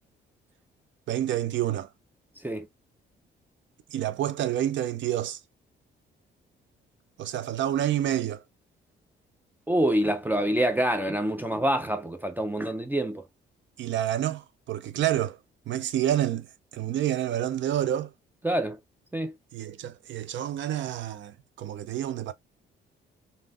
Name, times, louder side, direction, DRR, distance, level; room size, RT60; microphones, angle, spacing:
voice 1, 1.1-1.9 3.9-5.4 7.2-8.4 13.8-15.4 15.7-16.5 16.7-18.1 19.5-22.3, right 12 dB, 70° right, 0.5 m, -28 dB
voice 2, 9.7-13.2 18.4-18.8 19.1-19.3, right 1 dB, 10° right, 0.5 m, -26 dB
3.4 x 2.7 x 2.4 m
cardioid pair, 90°, 20 cm